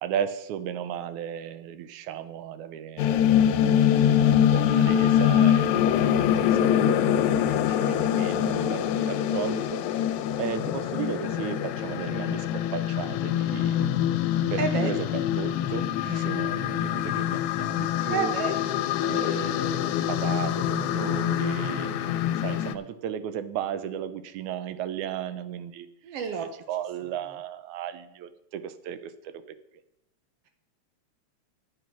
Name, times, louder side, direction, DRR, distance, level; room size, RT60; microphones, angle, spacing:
voice 1, 0.0-3.2 3.9-13.9 14.4-18.3 19.0-25.9 26.3-29.6, right 9 dB, 85° right, 12 dB, 2.1 m, -35 dB
sound 1, 3.0-22.7, left 10 dB, 90° left, 2.0 m, -24 dB
voice 2, 14.6-14.9 18.1-18.5 26.0-26.5, right 6 dB, 70° right, 6 dB, 1.6 m, -29 dB
8.9 x 8.3 x 6.0 m, 0.83 s
omnidirectional pair, 3.3 m